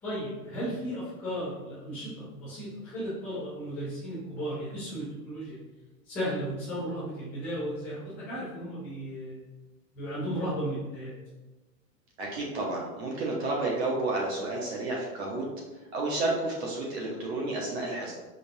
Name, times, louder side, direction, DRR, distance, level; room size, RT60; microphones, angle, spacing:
voice 1, 0.0-5.6 6.1-9.4 9.9-11.1, equal, 5° left, -14 dB, 0.4 m, -35 dB
voice 2, 12.2-15.4 15.9-18.1, right 2 dB, 40° right, -2 dB, 0.9 m, -31 dB
5.1 x 2.3 x 2.7 m, 1.1 s
supercardioid pair, 155°, 48 cm